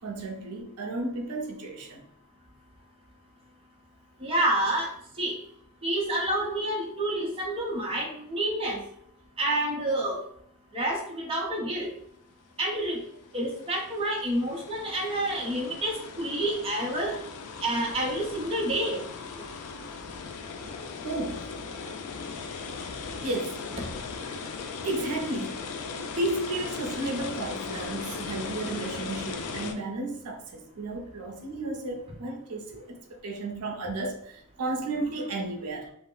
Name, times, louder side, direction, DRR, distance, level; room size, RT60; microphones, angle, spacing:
voice 1, 0.0-2.0 20.1-20.2 21.0-21.5 23.2-23.6 24.8-25.6 26.2-33.0 33.2-35.9, right 2 dB, 85° right, 1 dB, 0.5 m, -33 dB
voice 2, 4.2-4.9 5.2-5.3 5.8-8.8 9.4-10.2 10.7-11.9 12.6-13.0 13.3-17.2 17.6-19.0, right 1 dB, 25° right, -2 dB, 0.6 m, -28 dB
sound 1, 12.9-29.7, left 5 dB, 75° left, 0.4 m, -38 dB
2.3 x 2.0 x 3.6 m, 0.72 s
head